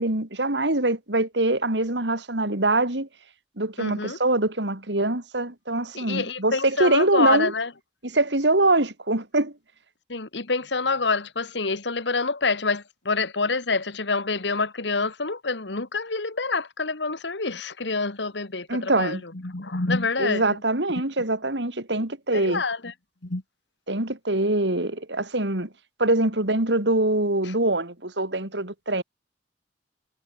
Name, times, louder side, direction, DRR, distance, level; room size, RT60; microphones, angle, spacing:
voice 1, 0.0-3.1 3.6-7.5 8.1-9.5 18.7-19.2 20.2-22.6 23.9-25.7 26.0-29.0, right 2 dB, 85° right, 4.0 m, -24 dB
voice 2, 3.8-4.2 5.9-7.7 10.1-20.6 22.3-22.9 23.2-23.4 27.4-27.5, left 3 dB, 85° left, 1.9 m, -27 dB
head